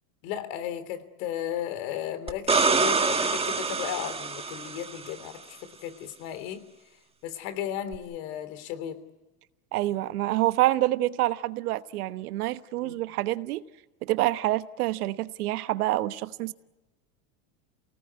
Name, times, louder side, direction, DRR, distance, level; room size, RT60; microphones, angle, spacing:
voice 1, 0.2-6.6 7.2-9.0 12.8-13.0, left 11 dB, 65° left, 3.4 m, -35 dB
sound 1, 2.3-5.1 7.9-8.0, right 4 dB, 15° right, 1.7 m, -26 dB
voice 2, 9.7-13.6 14.0-16.5, right 16 dB, 80° right, 1.2 m, -27 dB
28.5 x 19.0 x 9.5 m
supercardioid pair, 115°, 44 cm